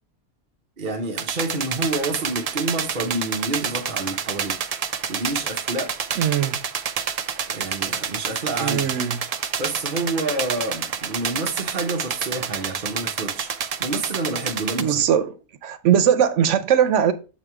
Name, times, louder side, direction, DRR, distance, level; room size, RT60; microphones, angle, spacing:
voice 1, 0.8-4.6 5.1-6.0 7.5-9.0 9.6-13.5 13.8-15.0, right 2 dB, 50° right, 1.0 m, -28 dB
sound 1, 1.2-14.8, right 7 dB, 65° right, 0.3 m, -29 dB
voice 2, 6.2-6.6 8.6-9.2 14.8-15.3 15.6-17.1, right 9 dB, 85° right, 1.0 m, -20 dB
7.2 x 3.1 x 4.6 m
omnidirectional pair, 1.2 m